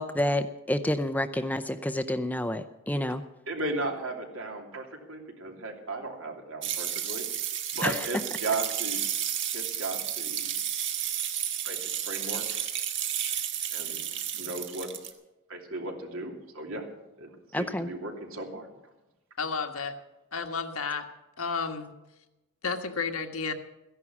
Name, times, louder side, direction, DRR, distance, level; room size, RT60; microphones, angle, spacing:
voice 1, 0.0-3.2 7.8-7.9 17.5-17.9, left 1 dB, 10° left, 11 dB, 0.5 m, -29 dB
voice 2, 3.5-7.3 7.7-9.0 9.5-10.5 11.6-12.7 13.7-14.9 15.5-16.9 17.2-17.3 17.6-18.7, right 2 dB, 80° right, 2 dB, 2.9 m, -36 dB
sound 1, 6.6-15.1, right 10 dB, 55° right, 1.5 m, -32 dB
voice 3, 19.4-19.9 20.3-21.1 21.4-21.9 22.6-23.5, left 5 dB, 90° left, 5 dB, 1.5 m, -31 dB
15.0 x 11.0 x 7.1 m, 0.97 s
head